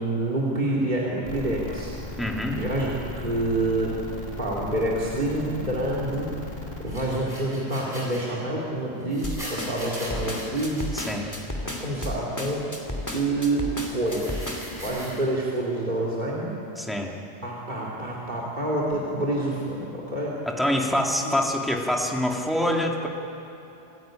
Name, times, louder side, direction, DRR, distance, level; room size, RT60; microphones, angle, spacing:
voice 1, 0.0-1.9 2.5-4.0 4.4-6.3 6.8-10.9 11.6-12.6 13.1-14.5 14.8-16.6 17.4-20.3 21.2-21.4, right 1 dB, 40° right, -5 dB, 3.0 m, -27 dB
sound 1, 1.2-6.8, left 2 dB, 55° left, 3.4 m, -37 dB
voice 2, 2.2-2.6 10.9-11.3 16.8-17.1 20.5-23.1, left 1 dB, ahead, 0 dB, 2.3 m, -25 dB
sound 2, 6.8-8.2 9.0-11.1 14.0-15.2, equal, 20° right, 8.0 m, -40 dB
sound 3, 9.2-14.8, left 1 dB, 15° left, 2.7 m, -32 dB
27.5 x 16.0 x 8.9 m, 2.9 s
omnidirectional pair, 1.2 m